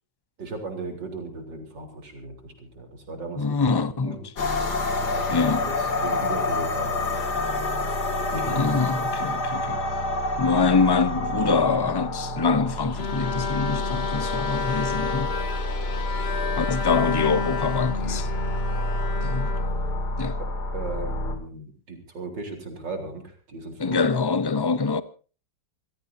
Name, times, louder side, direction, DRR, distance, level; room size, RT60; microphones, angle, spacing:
voice 1, 0.4-4.3 5.0-7.4 8.3-8.8 20.4-20.5 20.7-24.0, right 3 dB, 75° right, 4.5 m, -37 dB
voice 2, 3.4-4.2 5.3-5.6 8.5-9.8 10.4-15.3 16.6-18.3 19.2-19.5 20.2-20.4 23.8-25.0, left 4 dB, 30° left, 0.4 m, -24 dB
sound 1, 4.4-21.4, left 2 dB, 60° left, 3.0 m, -28 dB
Bowed string instrument, 13.0-20.3, left 4 dB, 45° left, 0.9 m, -31 dB
26.5 x 16.0 x 2.7 m
omnidirectional pair, 2.0 m